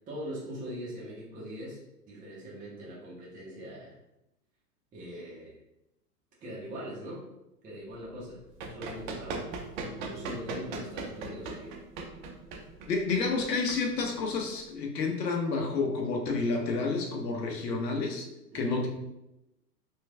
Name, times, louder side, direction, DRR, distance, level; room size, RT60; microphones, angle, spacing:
voice 1, 0.1-1.8 2.1-3.9 4.9-5.6 6.4-7.2 7.6-8.4 8.7-9.5 9.7-11.7 18.5-18.8, equal, 15° right, -6 dB, 0.8 m, -41 dB
Run, 8.2-14.7, right 3 dB, 35° right, 0.4 m, -39 dB
voice 2, 12.9-18.3 18.5-18.9, left 4 dB, 75° left, 2 dB, 0.9 m, -30 dB
3.2 x 3.0 x 2.3 m, 0.90 s
hypercardioid pair, 115°, 49 cm